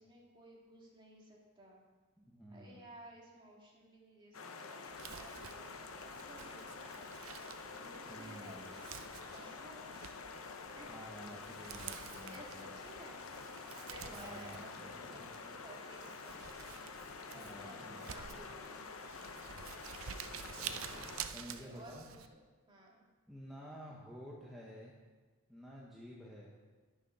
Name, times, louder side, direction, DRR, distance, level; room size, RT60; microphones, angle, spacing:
voice 1, 0.0-1.8 2.5-5.7 6.0-7.2 7.7-8.6 9.3-9.9 10.7-10.9 11.3-11.6 12.3-13.2 13.7-16.7 17.3-18.8 20.1-20.4 21.4-22.2 22.7-23.1, right 1 dB, 25° right, -3 dB, 2.0 m, -56 dB
voice 2, 2.2-2.9 8.1-8.8 10.9-12.8 14.1-15.3 17.3-18.5 20.5-22.0 23.3-24.9 25.5-26.6, equal, ahead, -5 dB, 1.1 m, -52 dB
sound 1, 4.3-21.3, left 4 dB, 75° left, 0.8 m, -48 dB
Crumpling crinkling, 4.9-22.3, right 8 dB, 70° right, 0.6 m, -50 dB
10.5 x 7.1 x 5.5 m, 1.3 s
head